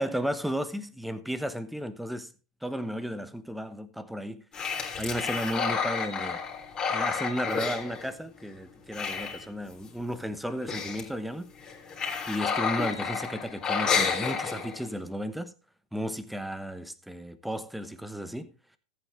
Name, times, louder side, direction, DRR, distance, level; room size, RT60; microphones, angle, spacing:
voice 1, 0.0-2.3 2.6-4.4 5.0-6.4 6.9-11.5 12.3-15.5 15.9-18.5, equal, ahead, 1.0 m, -34 dB
sound 1, 4.5-8.5 8.8-9.9 10.2-10.3 10.5-11.1 11.6-15.0, left 6 dB, 25° left, 3.5 m, -30 dB
14.5 x 8.5 x 3.4 m
hypercardioid pair, 100°, 3 cm